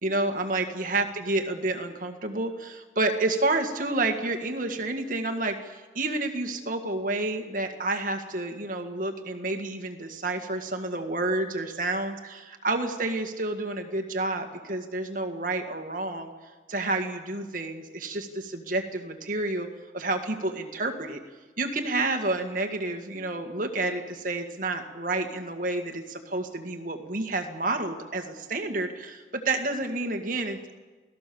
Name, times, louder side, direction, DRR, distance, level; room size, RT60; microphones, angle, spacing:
voice 1, 0.0-16.3 16.7-19.7 19.9-21.2 21.6-30.7, right 2 dB, 45° right, 5 dB, 1.9 m, -29 dB
29.0 x 17.5 x 7.1 m, 1.3 s
head